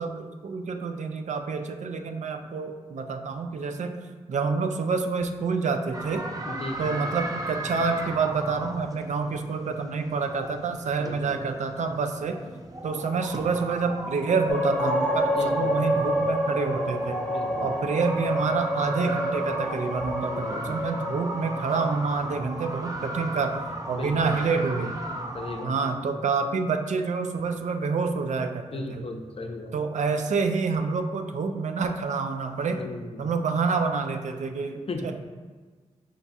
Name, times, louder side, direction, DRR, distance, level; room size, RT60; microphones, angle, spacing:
voice 1, 0.0-6.3 6.8-12.4 12.8-17.2 17.6-23.6 23.9-25.0 25.6-29.0 29.7-32.9 33.2-35.1, right 4 dB, 70° right, 6 dB, 0.4 m, -28 dB
sound 1, 5.9-25.7, right 1 dB, 30° right, 0.6 m, -36 dB
voice 2, 6.5-7.0 11.0-11.4 15.4-15.7 17.3-17.7 20.3-20.8 23.9-24.4 25.3-25.8 28.7-29.7 32.8-33.2 34.9-35.1, left 2 dB, 50° left, 4 dB, 0.5 m, -36 dB
sound 2, 14.5-22.6, equal, 10° left, 0.9 m, -28 dB
5.0 x 2.3 x 4.0 m, 1.4 s
cardioid pair, 65°, 13 cm